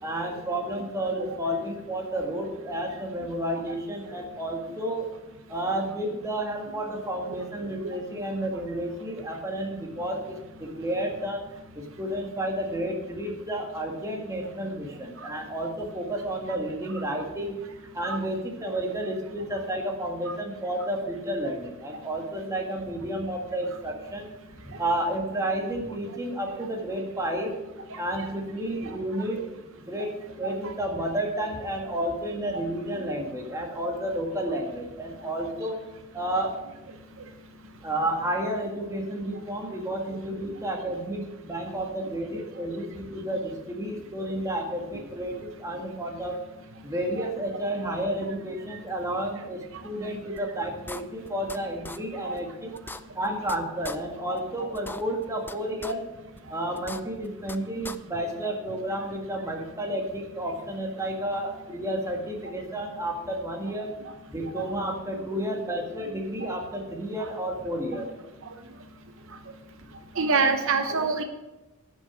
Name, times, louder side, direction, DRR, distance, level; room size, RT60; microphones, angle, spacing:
voice 1, 0.0-5.1 5.5-11.4 11.7-17.6 17.9-24.3 24.6-27.5 28.0-29.4 29.9-35.8 36.1-36.5 37.8-46.4 46.8-52.7 53.1-56.0 56.5-63.9 64.3-68.1, right 1 dB, 15° right, 0 dB, 1.8 m, -31 dB
voice 2, 27.9-28.3 28.9-29.0 29.3-29.4 30.4-30.7 42.3-42.4 47.2-47.3 52.2-52.4 64.6-64.7 65.3-65.4 70.2-71.2, right 4 dB, 65° right, 7 dB, 0.9 m, -27 dB
sound 1, 50.4-50.5 50.9-51.6 51.8-52.0 52.4-52.5 52.7-53.6 53.8-54.0 54.4-54.5 54.7-55.5 55.8-55.9 56.4-56.5 56.7-57.6 57.8-58.0, left 2 dB, 10° left, 0.4 m, -39 dB
11.0 x 6.3 x 7.5 m, 1.0 s
head